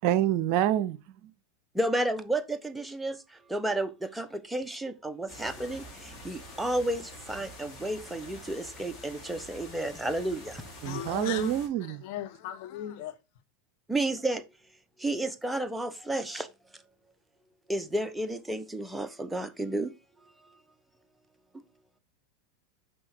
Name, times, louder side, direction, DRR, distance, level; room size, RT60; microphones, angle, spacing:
voice 1, 0.0-1.3 10.8-12.0, right 12 dB, 60° right, 0.6 m, -27 dB
voice 2, 1.8-3.2 3.5-5.8 6.2-7.0 7.3-10.6 13.9-14.4 15.0-16.5 17.7-19.9, right 1 dB, 5° right, 0.9 m, -31 dB
sound 1, 5.3-11.7, left 1 dB, 35° left, 4.0 m, -46 dB
voice 3, 10.8-11.6 11.9-13.2, left 10 dB, 60° left, 1.0 m, -37 dB
6.1 x 5.2 x 4.4 m
hypercardioid pair, 100°, 0 cm